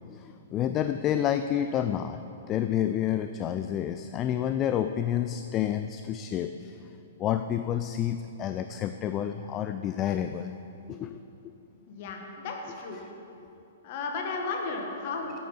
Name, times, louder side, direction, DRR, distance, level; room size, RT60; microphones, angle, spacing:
voice 1, 0.1-2.2 2.5-6.7 7.2-10.5 10.9-11.2, left 10 dB, 25° left, 9 dB, 0.3 m, -29 dB
voice 2, 11.9-13.0 13.8-15.3, left 4 dB, 45° left, 1 dB, 1.7 m, -34 dB
10.0 x 8.5 x 5.7 m, 2.9 s
figure-of-eight pair, 110°, 0 cm